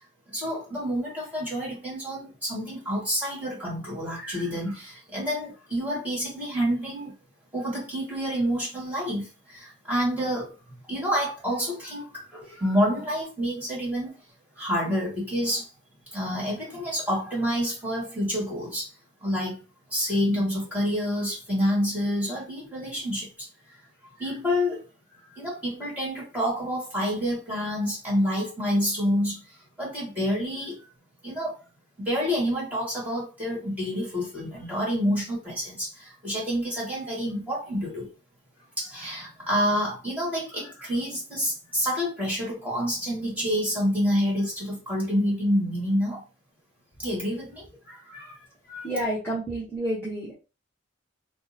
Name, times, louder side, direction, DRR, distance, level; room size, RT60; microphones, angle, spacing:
voice 1, 0.3-7.1 7.5-10.5 10.9-14.1 14.5-15.7 16.1-18.9 19.2-19.6 19.9-23.3 24.2-24.8 25.3-29.4 29.8-30.8 31.2-31.6 32.0-38.1 38.8-46.2 47.0-48.4 48.7-48.8, equal, 10° right, -5 dB, 1.5 m, -28 dB
voice 2, 48.8-50.3, right 1 dB, 10° left, -9 dB, 0.8 m, -29 dB
2.8 x 2.0 x 3.9 m, 0.31 s
head